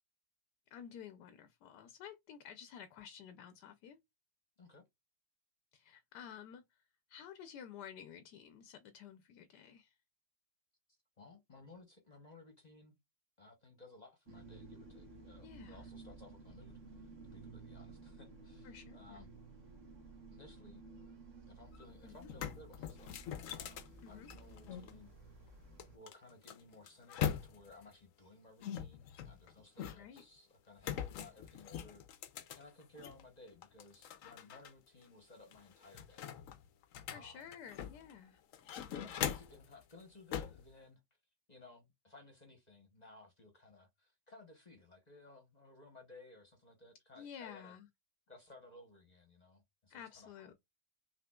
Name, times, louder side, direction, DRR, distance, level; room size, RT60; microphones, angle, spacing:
voice 1, 0.7-4.0 5.7-6.8 7.1-9.9 15.4-15.8 18.6-19.3 22.0-22.3 24.0-24.3 30.0-30.2 37.1-38.4 47.2-47.9 49.9-50.5, left 8 dB, 80° left, 1.2 m, -52 dB
voice 2, 11.2-13.0 13.4-19.3 20.3-20.8 21.5-23.2 23.5-25.1 25.9-32.1 32.6-36.3 37.1-37.5 38.9-41.0 41.5-47.7 48.3-50.5, left 2 dB, 30° left, 0.9 m, -58 dB
sound 1, 14.3-26.0, right 3 dB, 50° right, 1.6 m, -54 dB
sound 2, 21.7-21.8 22.2-24.9 25.8-27.8 28.6-30.2 30.8-33.2 33.6-34.7 35.0-35.1 35.5-38.1 38.5-39.7 40.3-40.6, left 9 dB, 65° left, 0.9 m, -42 dB
5.9 x 3.0 x 2.3 m
omnidirectional pair, 1.8 m